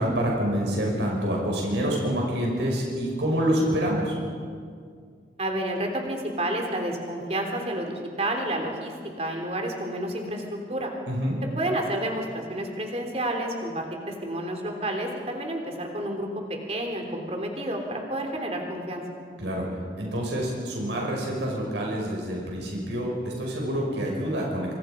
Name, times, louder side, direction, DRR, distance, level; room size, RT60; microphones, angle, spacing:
voice 1, 0.0-4.1 11.1-11.4 19.4-19.7 20.0-24.8, equal, 85° right, -2 dB, 5.9 m, -27 dB
voice 2, 5.4-10.9 11.6-16.3 16.7-19.0, right 1 dB, 35° right, 2 dB, 3.5 m, -30 dB
26.5 x 26.5 x 5.3 m, 2.1 s
head